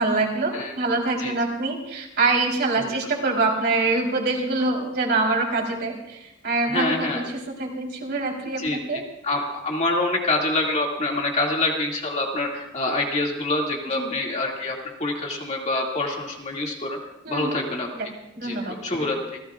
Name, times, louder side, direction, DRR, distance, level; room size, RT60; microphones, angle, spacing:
voice 1, 0.0-7.2 7.6-8.6 8.9-9.0 13.9-14.1 17.2-17.6 17.9-18.1 18.4-18.7, right 3 dB, 50° right, -2 dB, 3.8 m, -24 dB
voice 2, 6.6-7.3 8.6-17.0 17.3-17.9 18.4-19.4, left 2 dB, 35° left, -1 dB, 2.3 m, -26 dB
29.0 x 16.5 x 2.4 m, 0.88 s
head